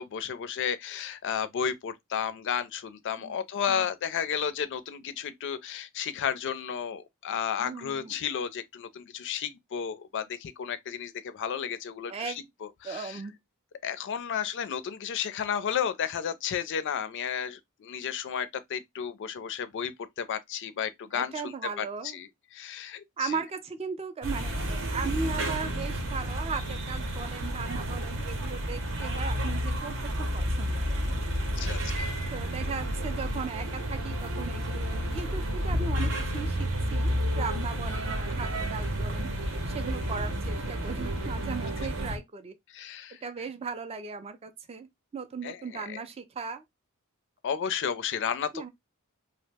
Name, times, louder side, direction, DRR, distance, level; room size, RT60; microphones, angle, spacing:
voice 1, 0.0-12.3 12.6-13.2 13.8-21.9 22.1-23.4 31.6-32.2 38.3-38.4 42.7-43.2 45.4-46.0 47.4-48.7, left 8 dB, 55° left, 0.4 m, -33 dB
voice 2, 7.6-8.2 12.1-12.4 12.8-13.3 21.1-22.2 23.2-31.1 31.6-31.8 32.3-39.3 39.7-42.5 43.2-46.6 48.5-48.7, right 5 dB, 25° right, 0.3 m, -37 dB
sound 1, 24.2-42.2, equal, 60° right, 0.7 m, -31 dB
sound 2, 32.6-42.1, right 4 dB, 90° right, 0.9 m, -43 dB
2.7 x 2.0 x 3.2 m
head